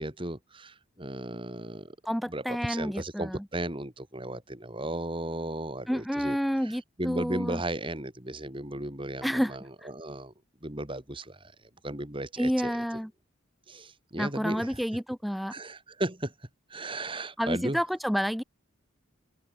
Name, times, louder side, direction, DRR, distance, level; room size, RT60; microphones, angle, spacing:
voice 1, 0.0-2.0 2.3-6.4 6.6-10.3 10.6-11.5 11.8-13.0 13.7-14.8 15.5-16.3 16.7-17.8, right 1 dB, 25° right, 3.4 m, -35 dB
voice 2, 2.0-3.4 5.9-7.6 9.2-9.6 12.4-13.1 14.2-15.5 17.4-18.4, equal, ahead, 2.3 m, -29 dB
head